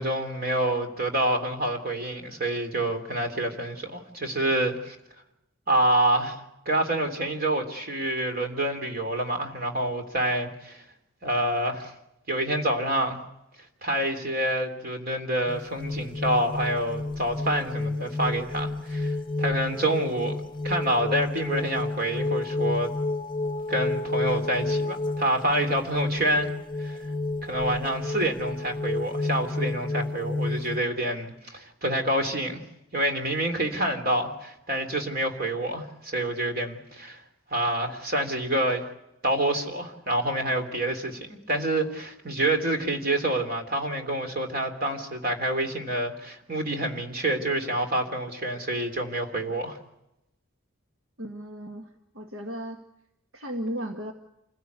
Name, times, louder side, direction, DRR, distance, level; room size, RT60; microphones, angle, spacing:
voice 1, 0.0-5.0 5.7-10.8 11.2-11.9 12.3-13.2 13.8-22.9 23.7-26.5 26.8-27.0 27.4-32.6 32.9-37.2 37.5-38.9 39.2-49.8, right 1 dB, 45° right, 5 dB, 3.3 m, -27 dB
sound 1, 15.5-30.8, left 2 dB, 20° left, 0.8 m, -30 dB
voice 2, 51.2-51.9 52.1-52.8 53.3-54.1, equal, 70° right, 4 dB, 1.8 m, -35 dB
28.0 x 16.5 x 8.2 m, 0.87 s
head